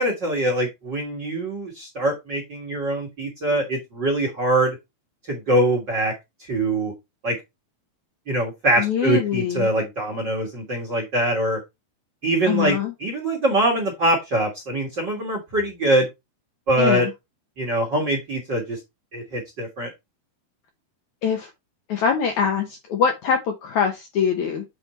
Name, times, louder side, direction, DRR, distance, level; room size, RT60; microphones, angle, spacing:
voice 1, 0.0-4.7 5.3-6.1 6.4-6.9 7.2-7.3 8.3-11.6 12.2-16.1 16.7-17.1 17.6-18.8 19.1-19.9, right 1 dB, 45° right, 1.4 m, -23 dB
voice 2, 8.8-9.7 12.5-12.9 16.8-17.1 21.2-21.5 21.9-24.6, left 7 dB, 70° left, 1.8 m, -23 dB
8.2 x 4.3 x 4.2 m
omnidirectional pair, 4.4 m